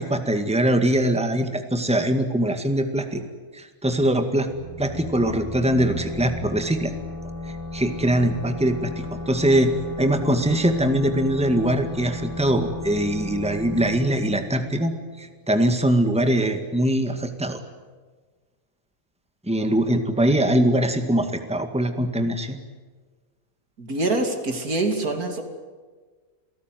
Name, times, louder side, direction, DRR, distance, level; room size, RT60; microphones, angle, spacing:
voice 1, 0.0-3.2 3.5-4.5 4.8-6.9 7.4-14.9 15.2-17.6 19.5-22.6, right 1 dB, 5° right, 7 dB, 2.0 m, -22 dB
sound 1, 4.3-15.8, left 2 dB, 20° right, 3.9 m, -35 dB
voice 2, 23.8-25.4, right 2 dB, 85° right, 5 dB, 3.3 m, -25 dB
28.5 x 18.5 x 9.4 m, 1.4 s
omnidirectional pair, 1.5 m